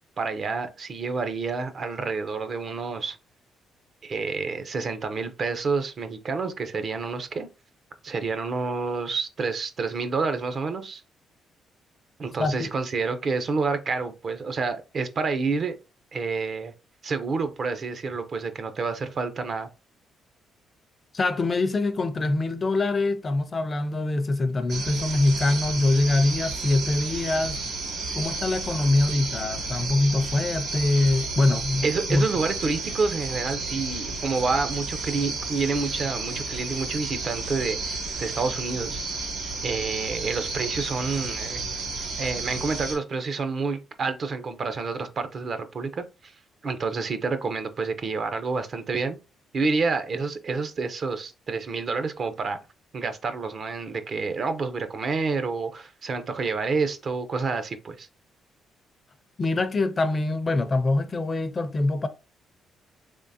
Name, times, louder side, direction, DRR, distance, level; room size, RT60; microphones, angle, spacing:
voice 1, 0.2-3.2 4.0-7.5 8.0-11.0 12.2-15.8 16.1-16.7 17.0-19.7 31.8-39.0 39.6-41.8 42.2-46.3 46.6-49.2 49.5-52.6 52.9-58.1, right 4 dB, 50° right, 0.6 m, -28 dB
voice 2, 21.1-27.6 28.1-32.3 59.4-62.1, left 2 dB, 35° left, 0.5 m, -24 dB
sound 1, 24.7-43.0, right 3 dB, 75° right, 2.1 m, -32 dB
3.5 x 3.2 x 2.7 m
cardioid pair, 90°, 0 cm